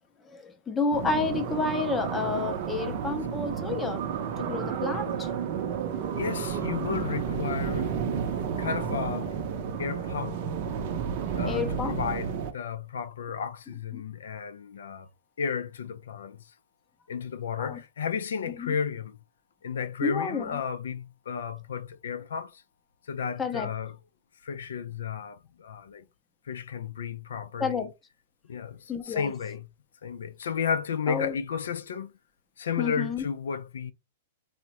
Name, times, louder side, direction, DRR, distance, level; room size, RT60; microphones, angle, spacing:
voice 1, 0.3-4.0 4.4-5.3 11.5-12.0 13.9-14.0 17.6-17.8 18.6-18.7 20.0-20.5 23.4-23.7 27.6-27.9 28.9-29.2 31.1-31.3 32.8-33.2, left 4 dB, 10° left, 0.5 m, -30 dB
sound 1, 0.9-12.5, right 7 dB, 45° right, 0.5 m, -31 dB
voice 2, 6.2-8.0 8.6-9.4 9.8-10.4 11.3-15.1 15.4-16.4 17.1-19.2 19.6-22.6 23.1-24.0 24.4-26.0 26.5-27.9 28.5-29.7 30.0-32.1 32.6-33.9, left 6 dB, 90° left, 0.4 m, -33 dB
3.6 x 2.1 x 2.8 m
hypercardioid pair, 160°, 0 cm